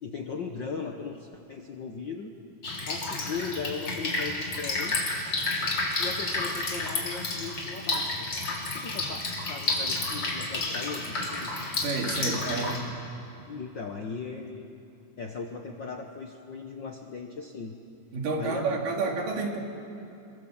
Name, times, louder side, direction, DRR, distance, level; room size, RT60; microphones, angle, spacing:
voice 1, 0.0-2.3 2.9-5.0 6.0-8.3 8.7-11.5 13.5-14.8 15.2-17.8 18.4-18.8, left 5 dB, 70° left, 3 dB, 1.0 m, -38 dB
Drip, 2.6-12.8, left 2 dB, 45° left, 3.9 m, -31 dB
voice 2, 11.8-12.8 18.1-19.6, right 3 dB, 85° right, 1 dB, 4.1 m, -29 dB
27.5 x 22.0 x 7.3 m, 2.8 s
omnidirectional pair, 3.8 m